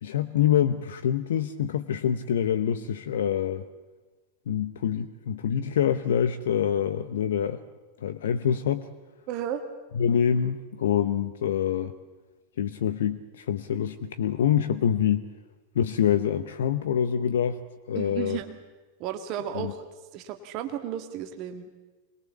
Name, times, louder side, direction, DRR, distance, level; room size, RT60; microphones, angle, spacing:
voice 1, 0.0-3.6 4.5-7.6 8.0-8.9 10.0-11.9 12.6-15.2 15.7-17.6 17.9-18.4 19.5-19.7, left 9 dB, 60° left, 11 dB, 0.9 m, -25 dB
voice 2, 9.3-9.6 17.9-18.6 19.0-19.8 20.1-21.7, right 10 dB, 40° right, 7 dB, 1.9 m, -33 dB
25.5 x 21.5 x 7.3 m, 1.2 s
figure-of-eight pair, 90°, 0 cm